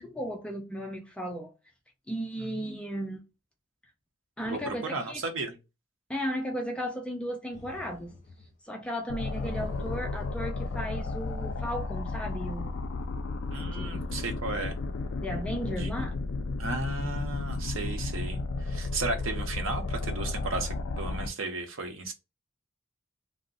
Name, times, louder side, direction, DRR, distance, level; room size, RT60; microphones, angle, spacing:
voice 1, 0.0-1.5 2.1-3.2 4.4-5.2 6.1-8.1 8.6-12.7 13.6-14.0 15.2-16.1, equal, 5° left, 0.4 m, -35 dB
voice 2, 2.4-2.8 4.4-5.6 13.5-14.8 15.8-15.9 16.6-22.1, right 3 dB, 75° right, 0.7 m, -35 dB
sound 1, 7.5-8.5 8.8-8.9 9.2-12.6, left 2 dB, 35° left, 0.7 m, -48 dB
sound 2, 9.1-21.3, left 3 dB, 80° left, 0.4 m, -33 dB
2.5 x 2.0 x 3.7 m
head